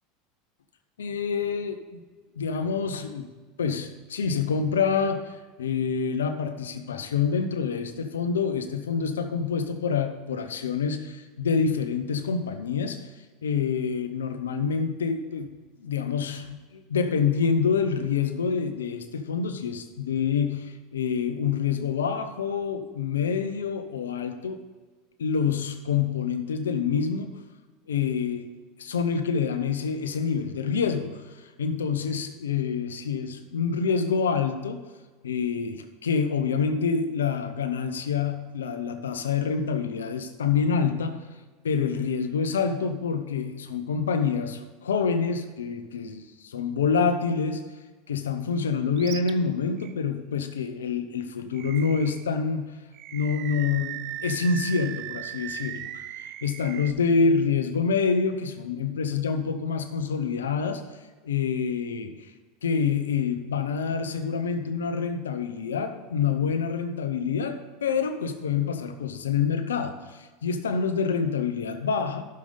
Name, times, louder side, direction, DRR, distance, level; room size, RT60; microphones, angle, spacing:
voice 1, 1.0-2.0 2.4-3.3 3.6-13.1 13.4-24.6 25.2-27.4 27.9-28.5 28.8-34.9 35.2-41.2 41.6-47.6 48.1-52.8 53.1-60.8 61.2-62.1 62.6-72.2, left 6 dB, 90° left, 8 dB, 0.8 m, -27 dB
Animal, 49.0-49.3 49.8-49.9 51.5-52.3 52.9-56.9, right 11 dB, 50° right, 0.5 m, -38 dB
11.5 x 6.7 x 3.9 m, 1.4 s
hypercardioid pair, 95°, 0 cm